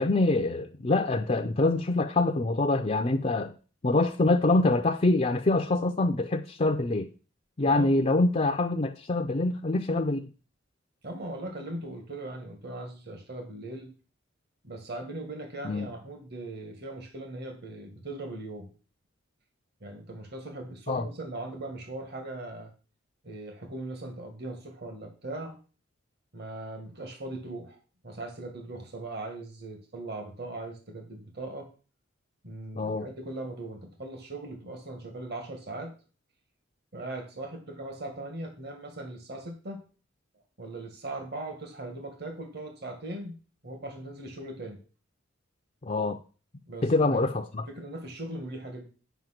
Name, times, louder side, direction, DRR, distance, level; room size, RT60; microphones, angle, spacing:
voice 1, 0.0-3.5 3.8-7.1 7.6-10.3 15.6-15.9 20.9-21.1 32.7-33.1 45.8-46.2 46.8-47.6, left 2 dB, 35° left, 0.5 m, -25 dB
voice 2, 11.0-13.9 14.6-18.7 19.8-22.7 23.2-25.6 26.3-27.8 28.0-31.7 32.4-35.9 36.9-39.8 40.6-43.4 43.6-44.8 46.7-47.3 47.7-48.9, right 2 dB, 55° right, 1.9 m, -39 dB
9.2 x 5.6 x 5.9 m
head